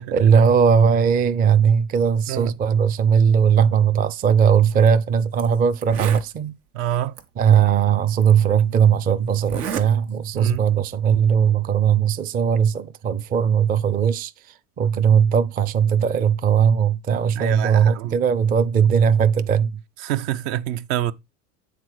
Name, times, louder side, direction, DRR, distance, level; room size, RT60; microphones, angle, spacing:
voice 1, 0.0-6.5 7.4-14.3 14.8-19.8, right 7 dB, 20° right, 0.4 m, -18 dB
Zipper (clothing), 4.7-4.9 5.4-5.5 5.7-6.3 7.2-7.3 8.2-8.3 9.4-9.9 10.2-10.6, right 8 dB, 85° right, 1.2 m, -30 dB
voice 2, 6.7-7.1 10.3-10.7 17.3-18.2 20.0-21.1, right 12 dB, 60° right, 0.7 m, -26 dB
8.1 x 3.7 x 4.6 m
hypercardioid pair, 95°, 45 cm